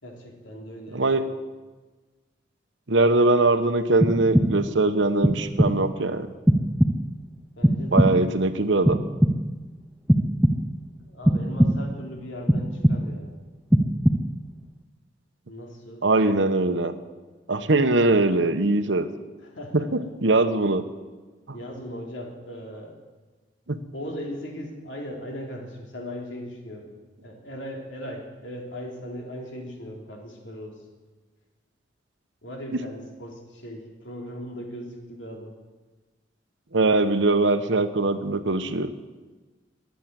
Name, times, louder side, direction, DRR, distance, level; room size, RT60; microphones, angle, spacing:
voice 1, 0.0-1.2 7.6-8.1 11.0-13.3 15.5-16.0 19.5-19.9 21.5-22.9 23.9-26.9 27.2-30.8 32.4-35.5, equal, 80° left, 1 dB, 3.4 m, -38 dB
voice 2, 0.9-1.3 2.9-6.3 7.9-9.0 16.0-16.9 17.5-19.1 19.7-19.9 20.2-20.8 21.5-21.6 23.7-23.8 36.7-38.9, right 2 dB, 75° right, 10 dB, 1.1 m, -21 dB
sound 1, 4.0-4.8 5.2-6.0 6.5-7.3 7.6-8.4 8.8-9.7 10.1-10.9 11.2-12.0 12.5-13.3 13.7-14.5, equal, 5° right, 0.7 m, -22 dB
21.5 x 8.6 x 7.6 m, 1.3 s
head